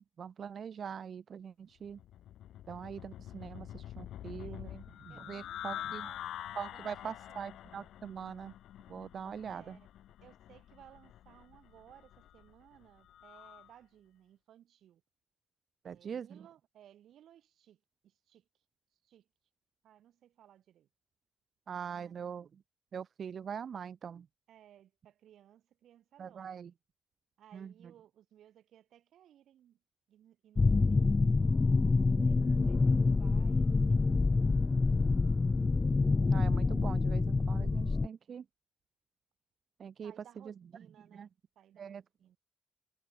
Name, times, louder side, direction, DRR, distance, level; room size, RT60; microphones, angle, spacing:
voice 1, 0.0-2.0 2.7-6.1 6.6-8.5 8.9-9.8 15.8-16.5 21.7-22.6 22.9-24.3 26.2-26.7 27.5-27.9 32.1-32.7 36.3-38.5 39.8-40.5 41.1-41.3 41.8-42.0, right 7 dB, 45° right, 0.4 m, -43 dB
sound 1, 1.8-13.7, left 12 dB, 90° left, 1.1 m, -46 dB
voice 2, 4.2-4.7 5.1-6.2 6.7-7.4 9.5-9.9 10.2-15.0 15.8-18.5 19.0-19.3 19.8-20.9 21.9-22.1 24.5-26.6 27.4-29.8 30.1-31.2 32.2-35.2 40.0-41.3 41.6-42.4, right 11 dB, 75° right, 4.0 m, -61 dB
sound 2, 30.6-38.1, left 3 dB, 20° left, 0.3 m, -27 dB
cardioid pair, 155°, 0 cm